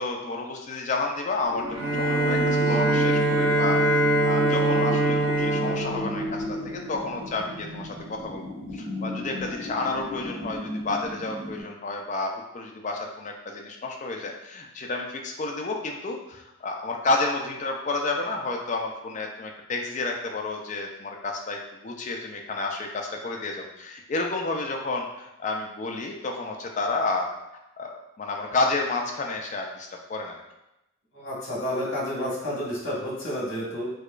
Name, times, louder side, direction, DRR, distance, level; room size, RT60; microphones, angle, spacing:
voice 1, 0.0-8.4 8.7-27.3 27.8-30.4, left 3 dB, 35° left, 1 dB, 0.4 m, -30 dB
sound 1, 1.4-11.6, equal, 85° right, 1.4 m, -34 dB
Bowed string instrument, 1.7-6.9, right 2 dB, 55° right, 1.2 m, -24 dB
voice 2, 31.1-33.9, equal, 75° left, -6 dB, 1.4 m, -30 dB
4.7 x 2.2 x 2.5 m, 0.90 s
head